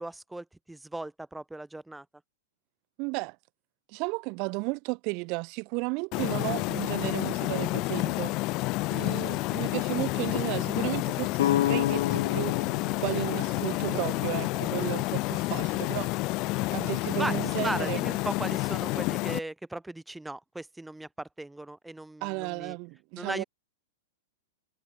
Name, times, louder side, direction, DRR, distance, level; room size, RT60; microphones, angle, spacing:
voice 1, 0.0-2.1 8.9-9.2 17.1-22.8 23.2-23.4, right 2 dB, 5° right, 1.2 m, -37 dB
voice 2, 3.0-3.4 3.9-8.3 8.9-18.0 22.2-23.4, right 31 dB, 40° right, 0.9 m, -34 dB
sound 1, 6.1-19.4, left 23 dB, 40° left, 0.4 m, -29 dB
sound 2, 11.4-15.2, left 12 dB, 55° left, 1.1 m, -31 dB
figure-of-eight pair, 95°, 0 cm